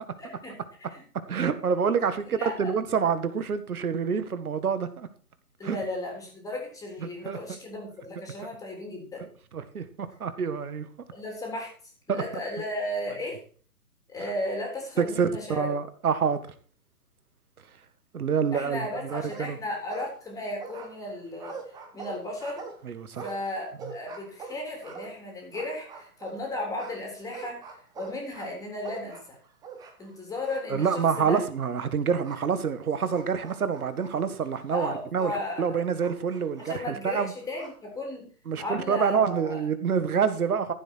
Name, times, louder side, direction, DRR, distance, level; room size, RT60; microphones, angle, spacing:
voice 1, 0.2-0.5 0.9-1.0 2.3-2.7 5.6-9.2 11.1-11.7 12.1-13.4 14.1-15.7 18.5-21.6 21.9-22.6 23.2-27.6 28.0-29.4 30.0-31.4 34.7-35.8 36.6-38.2 38.6-39.6, left 1 dB, 5° left, 3.4 m, -35 dB
voice 2, 1.3-5.1 5.6-5.8 7.3-7.4 9.5-10.9 12.1-12.2 15.0-16.4 18.1-19.6 22.8-23.3 30.7-37.3 38.5-40.7, right 6 dB, 65° right, 1.9 m, -27 dB
sound 1, 18.4-18.8 19.1-20.3 20.6-26.4 26.8-30.1 30.4-31.3 32.2-32.4 33.1-35.4 36.0-37.8, right 4 dB, 10° right, 1.1 m, -44 dB
14.5 x 7.9 x 4.6 m
hypercardioid pair, 140°, 47 cm